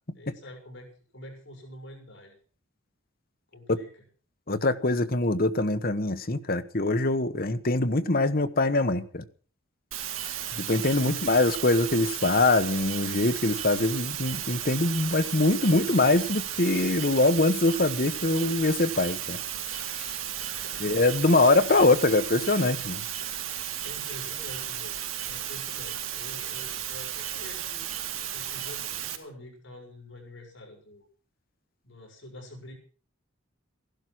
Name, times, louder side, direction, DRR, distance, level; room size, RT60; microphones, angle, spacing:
voice 1, 0.1-2.4 3.5-3.9 10.2-10.5 11.0-11.4 20.4-20.9 21.6-22.0 23.8-31.0 31.8-32.7, left 1 dB, 60° left, 6.5 m, -46 dB
voice 2, 4.5-9.2 10.5-19.4 19.7-20.2 20.8-23.0, left 2 dB, 45° left, 1.2 m, -23 dB
sound 1, 9.9-29.2, right 10 dB, 90° right, 2.7 m, -34 dB
15.5 x 12.0 x 6.2 m
head